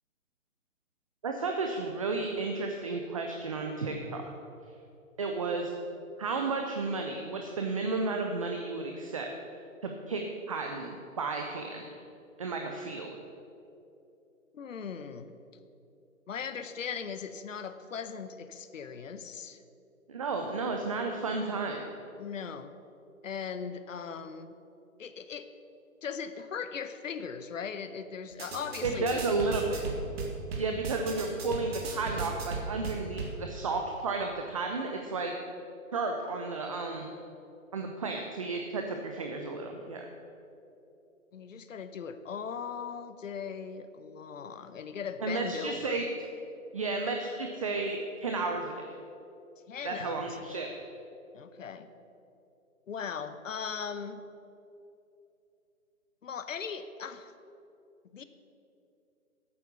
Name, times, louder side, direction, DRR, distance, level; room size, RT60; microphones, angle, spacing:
voice 1, 1.2-4.2 5.2-5.7 6.2-9.3 9.8-10.2 10.5-11.8 12.4-13.2 20.1-21.8 28.8-29.8 30.6-35.3 35.9-37.1 37.7-40.0 45.2-46.1 46.7-48.7 49.8-50.7, right 3 dB, 25° right, 3 dB, 0.5 m, -32 dB
voice 2, 14.5-15.3 16.3-19.6 22.2-22.7 23.2-24.6 25.0-25.5 26.0-29.3 41.3-46.0 49.7-50.6 51.3-51.9 52.9-54.2 56.2-57.3 58.1-58.2, left 6 dB, 65° left, 11 dB, 0.9 m, -39 dB
sound 1, 28.3-33.4, right 4 dB, 45° right, 1.7 m, -37 dB
8.7 x 8.4 x 6.8 m, 2.8 s
figure-of-eight pair, 140°, 42 cm